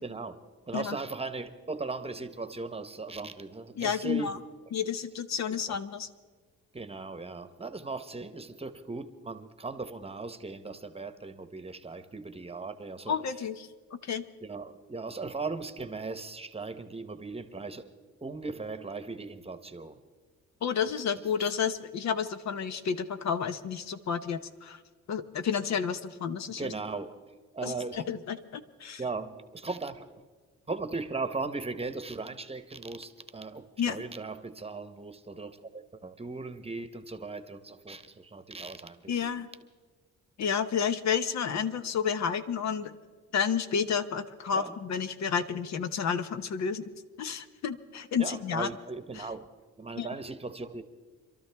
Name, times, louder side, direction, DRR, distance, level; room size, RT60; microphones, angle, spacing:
voice 1, 0.0-0.4 0.7-4.3 5.5-5.8 6.7-13.1 14.4-17.8 18.2-20.0 21.2-21.5 26.5-27.2 27.5-28.1 29.0-30.1 30.7-39.3 44.5-44.8 48.2-49.5 49.8-50.8, right 3 dB, 20° right, 10 dB, 1.0 m, -38 dB
voice 2, 3.8-4.4 4.7-6.1 13.1-13.7 14.0-14.2 20.6-24.8 25.1-26.7 27.6-29.0 33.8-34.0 39.1-39.5 40.4-42.9 43.3-46.9 47.2-48.7 49.2-49.3 50.0-50.1, left 7 dB, 65° left, 10 dB, 0.9 m, -31 dB
26.0 x 13.0 x 3.5 m, 1.4 s
cardioid pair, 90°, 30 cm